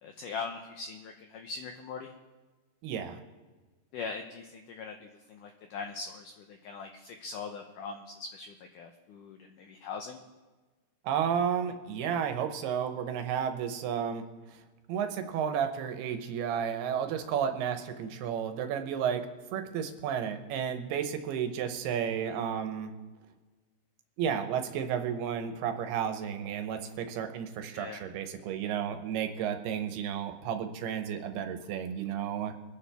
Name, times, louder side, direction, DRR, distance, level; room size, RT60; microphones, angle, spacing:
voice 1, 0.0-2.1 3.9-10.2 22.2-22.3 27.7-28.0, left 4 dB, 85° left, 5 dB, 1.8 m, -41 dB
voice 2, 2.8-3.2 11.0-14.2 14.9-22.9 24.2-32.5, right 8 dB, 80° right, 7 dB, 2.8 m, -32 dB
23.5 x 10.0 x 3.4 m, 1.3 s
omnidirectional pair, 4.7 m